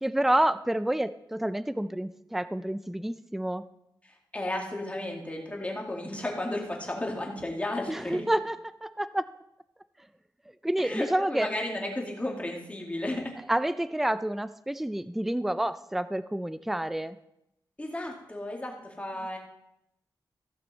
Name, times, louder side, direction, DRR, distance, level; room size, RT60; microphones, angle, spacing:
voice 1, 0.0-3.6 7.9-8.6 8.8-9.2 10.6-11.5 13.5-17.2, right 1 dB, 5° right, 13 dB, 0.4 m, -28 dB
voice 2, 4.0-8.3 10.8-13.4 17.8-19.4, left 1 dB, 15° left, 0 dB, 2.2 m, -34 dB
15.0 x 6.7 x 4.1 m, 0.83 s
wide cardioid pair, 100°, 8 cm